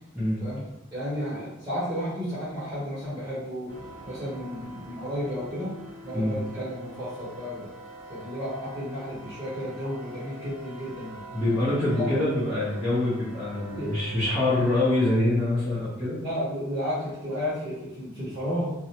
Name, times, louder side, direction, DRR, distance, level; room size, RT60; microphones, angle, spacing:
voice 1, 0.9-3.7 4.0-5.7 6.0-7.7 8.1-11.2 11.9-12.1 13.7-13.9 16.2-18.7, equal, 20° right, -12 dB, 1.1 m, -32 dB
sound 1, 3.7-15.1, right 2 dB, 70° right, 0.6 m, -45 dB
voice 2, 11.3-16.2, left 1 dB, ahead, -15 dB, 0.7 m, -25 dB
2.6 x 2.1 x 2.8 m, 0.91 s
head